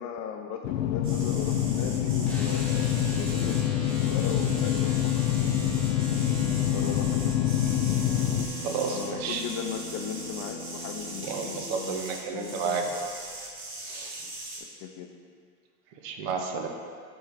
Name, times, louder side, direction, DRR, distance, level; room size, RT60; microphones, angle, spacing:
voice 1, 0.0-5.1 6.7-7.3 8.9-12.0 12.3-12.8 14.2-14.3 14.8-15.1, left 8 dB, 40° left, 6 dB, 0.5 m, -37 dB
sound 1, 0.6-8.5, left 11 dB, 80° left, 0.5 m, -26 dB
sound 2, 1.0-14.6, right 2 dB, 25° right, 1.2 m, -40 dB
sound 3, 2.3-11.6, left 2 dB, 5° left, 0.9 m, -40 dB
voice 2, 8.6-9.4 11.2-13.0 13.8-14.2 16.0-16.7, right 5 dB, 60° right, 3 dB, 0.9 m, -32 dB
4.7 x 4.4 x 4.7 m, 2.2 s
hypercardioid pair, 100°, 47 cm